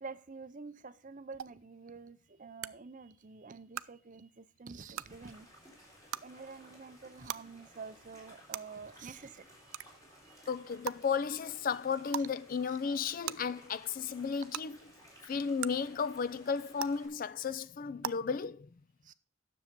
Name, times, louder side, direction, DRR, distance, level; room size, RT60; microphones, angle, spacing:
voice 1, 0.0-5.5 6.2-9.8 10.2-10.5 12.7-12.8 19.0-19.1, right 4 dB, 40° right, 0.6 m, -48 dB
sound 1, 1.4-1.5 2.6-2.7 3.7-3.8 4.9-5.0 6.1-6.2 7.3-7.4 8.5-8.6 9.7-9.8 10.8-10.9 12.1-12.3 13.2-13.3 14.5-14.6 15.6-15.7 16.8-16.9 18.0-18.1, right 10 dB, 85° right, 0.4 m, -36 dB
sound 2, 5.1-17.1, equal, 15° left, 3.7 m, -58 dB
voice 2, 10.5-14.8 15.3-18.7, left 6 dB, 40° left, 0.4 m, -34 dB
9.9 x 7.0 x 5.2 m
head